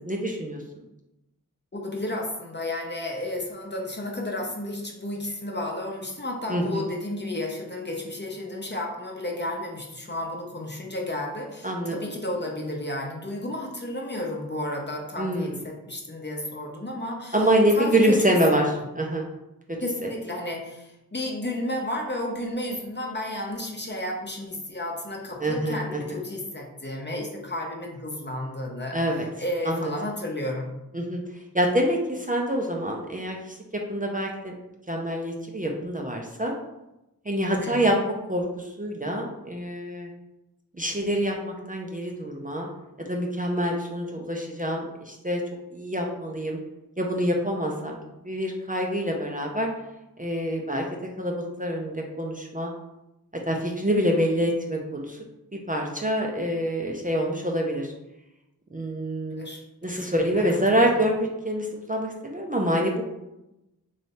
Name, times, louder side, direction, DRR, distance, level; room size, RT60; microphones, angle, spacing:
voice 1, 0.1-0.6 6.5-6.8 11.6-11.9 15.2-15.5 17.3-19.3 20.0-20.1 25.4-25.8 26.1-26.2 28.9-29.3 29.6-29.9 30.9-31.2 31.5-34.5 34.9-36.5 37.3-38.0 38.3-40.1 40.8-42.7 43.1-45.4 45.7-46.6 47.0-48.0 48.2-49.7 50.2-50.8 51.2-52.7 53.5-55.2 55.7-57.9 58.7-59.4 59.8-63.0, equal, 25° right, 0 dB, 0.5 m, -26 dB
voice 2, 1.7-17.5 17.7-18.6 19.8-30.7 37.6-37.8 59.3-60.5 60.7-60.9, left 1 dB, 30° left, 0 dB, 0.7 m, -32 dB
3.2 x 2.6 x 4.1 m, 0.93 s
wide cardioid pair, 45°, 36 cm